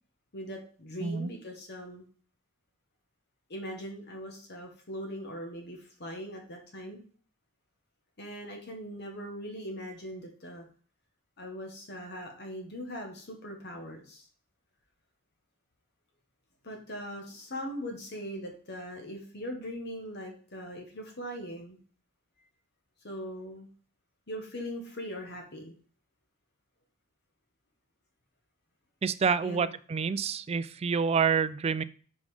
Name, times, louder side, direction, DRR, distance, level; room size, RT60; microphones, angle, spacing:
voice 1, 0.3-2.1 3.5-7.0 8.2-10.6 11.4-14.2 16.6-21.8 23.0-23.7 24.3-25.7 29.4-29.7, equal, 50° left, 3 dB, 1.2 m, -40 dB
voice 2, 1.0-1.3 29.0-31.8, right 6 dB, 30° right, 15 dB, 0.3 m, -28 dB
5.3 x 5.2 x 4.9 m, 0.43 s
head